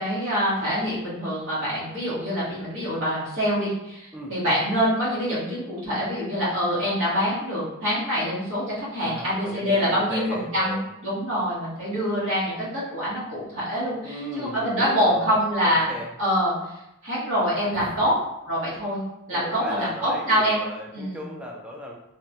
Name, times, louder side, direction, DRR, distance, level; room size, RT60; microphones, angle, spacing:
voice 1, 0.0-16.5 17.0-18.1 18.4-19.0 19.3-20.6 20.9-21.2, equal, 60° right, -10 dB, 1.3 m, -25 dB
voice 2, 9.0-10.9 14.0-15.3 15.6-16.1 17.7-18.1 19.3-21.9, equal, 5° right, -2 dB, 0.4 m, -36 dB
3.3 x 2.2 x 2.7 m, 0.87 s
head